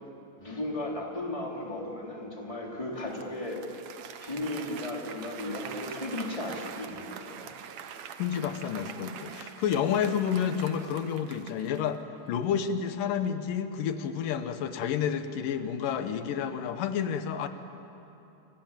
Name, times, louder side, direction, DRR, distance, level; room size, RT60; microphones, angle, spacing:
voice 1, 0.4-3.6 4.2-7.5, left 1 dB, 10° left, -2 dB, 3.7 m, -35 dB
Applause, 3.1-12.0, right 8 dB, 65° right, 2.1 m, -44 dB
voice 2, 8.2-12.0 12.3-17.5, left 8 dB, 90° left, 9 dB, 2.8 m, -30 dB
30.0 x 27.0 x 7.5 m, 2.8 s
omnidirectional pair, 3.7 m